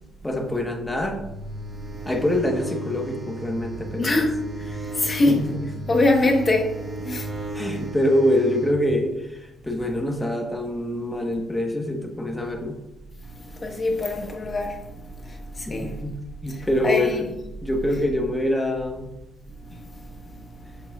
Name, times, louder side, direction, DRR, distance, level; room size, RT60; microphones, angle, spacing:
voice 1, 0.2-1.2 2.0-4.1 4.7-5.7 7.5-12.8 15.7-16.2 16.4-17.3 17.6-19.1, left 1 dB, 10° left, 1.2 m, -25 dB
sound 1, 1.2-8.8, right 2 dB, 25° right, 1.1 m, -35 dB
voice 2, 4.0-5.4 5.9-6.8 7.0-7.3 13.6-14.8 15.2-16.0 16.5-17.3 19.7-19.8, left 2 dB, 30° left, 1.2 m, -23 dB
7.2 x 6.8 x 2.4 m
cardioid pair, 90°, 0 cm